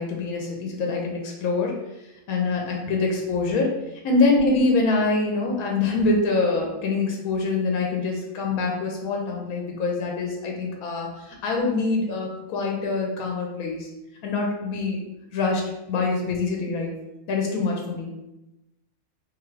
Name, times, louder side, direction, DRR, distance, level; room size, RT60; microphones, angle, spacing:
voice 1, 0.0-1.7 2.3-3.7 4.0-13.9 14.2-15.0 15.3-16.9 17.3-18.1, left 3 dB, 85° left, 0 dB, 1.1 m, -25 dB
2.6 x 2.5 x 3.1 m, 0.95 s
omnidirectional pair, 1.5 m